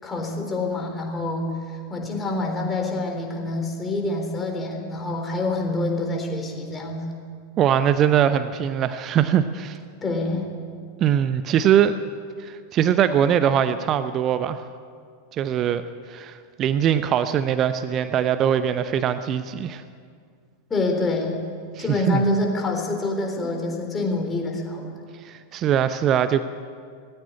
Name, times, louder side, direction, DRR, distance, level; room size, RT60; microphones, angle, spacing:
voice 1, 0.0-1.6 1.9-7.1 10.0-10.5 20.7-21.4 21.8-24.9, left 2 dB, 15° left, 2 dB, 4.0 m, -26 dB
voice 2, 7.6-9.8 11.0-11.9 12.4-14.6 15.3-15.8 16.1-19.8 21.8-22.2 25.2-26.4, right 9 dB, 30° right, 11 dB, 0.8 m, -21 dB
19.0 x 15.5 x 9.6 m, 2.1 s
figure-of-eight pair, 90°, 0 cm